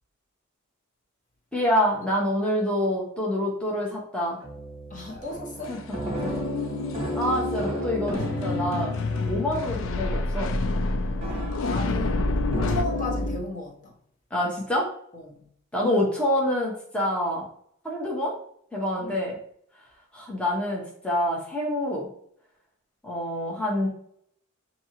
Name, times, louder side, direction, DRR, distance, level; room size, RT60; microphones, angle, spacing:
voice 1, 1.5-4.4 5.7-5.8 6.2-6.4 7.1-8.9 9.2-10.5 14.3-14.9 15.7-17.4 17.8-18.3 18.7-19.4 20.1-22.1 23.0-23.9, left 1 dB, 5° left, -4 dB, 0.8 m, -26 dB
sound 1, 4.4-10.5 11.2-13.4, right 1 dB, 25° right, 1.2 m, -34 dB
voice 2, 4.9-5.8 11.5-14.0 15.1-15.4 19.0-19.2, left 2 dB, 35° left, -2 dB, 0.9 m, -35 dB
sound 2, 5.6-5.7 6.9-7.3 8.1-12.8, left 3 dB, 60° left, 0.3 m, -28 dB
sound 3, 6.1-13.4, left 3 dB, 80° left, 0.9 m, -33 dB
6.1 x 2.8 x 2.9 m, 0.67 s
head